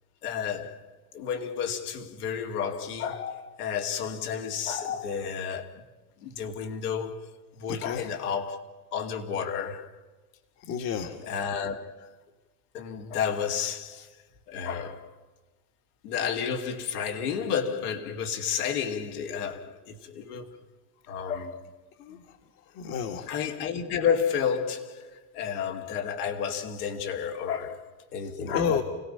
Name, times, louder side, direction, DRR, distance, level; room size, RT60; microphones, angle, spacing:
voice 1, 0.2-0.8 1.1-5.8 6.2-9.9 11.2-12.1 12.7-14.1 14.5-15.1 16.0-20.6 21.1-21.8 22.1-22.2 23.3-28.8, left 7 dB, 75° left, 2.8 m, -31 dB
voice 2, 7.7-8.1 10.7-11.2 22.0-22.2 22.8-23.3 28.5-28.8, left 7 dB, 50° left, 1.9 m, -30 dB
29.5 x 17.0 x 5.7 m
supercardioid pair, 125°, 46 cm